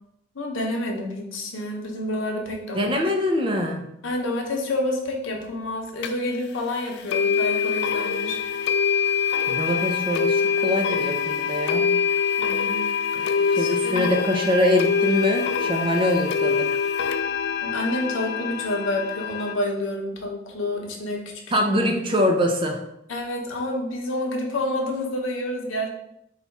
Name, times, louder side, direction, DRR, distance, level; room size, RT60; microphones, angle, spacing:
voice 1, 0.3-2.9 4.0-8.4 12.4-12.9 13.5-14.1 17.6-21.2 23.1-25.9, left 1 dB, 80° left, 1 dB, 0.9 m, -28 dB
voice 2, 2.7-3.8 9.5-11.9 13.6-16.7 21.5-22.8, left 1 dB, 25° right, 3 dB, 0.5 m, -23 dB
sound 1, 6.0-6.1 7.1-19.5, left 6 dB, 55° left, 0.3 m, -24 dB
4.0 x 2.3 x 4.5 m, 0.80 s
head